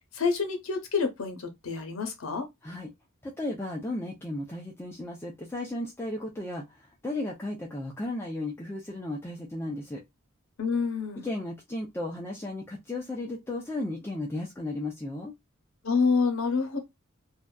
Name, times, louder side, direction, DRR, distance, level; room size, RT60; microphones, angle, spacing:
voice 1, 0.1-2.5 10.6-11.3 15.8-16.8, left 5 dB, 80° left, 0.7 m, -27 dB
voice 2, 3.2-10.0 11.2-15.3, left 1 dB, 10° left, 0.4 m, -35 dB
2.6 x 2.1 x 2.2 m
head